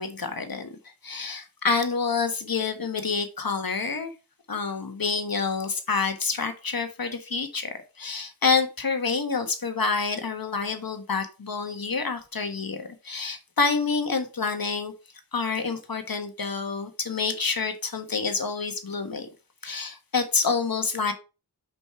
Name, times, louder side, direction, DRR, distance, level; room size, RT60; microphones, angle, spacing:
voice 1, 0.0-4.1 4.5-14.9 15.3-19.3 19.6-21.1, left 4 dB, 60° left, 1.4 m, -28 dB
5.4 x 5.2 x 4.6 m
wide cardioid pair, 45°, 40 cm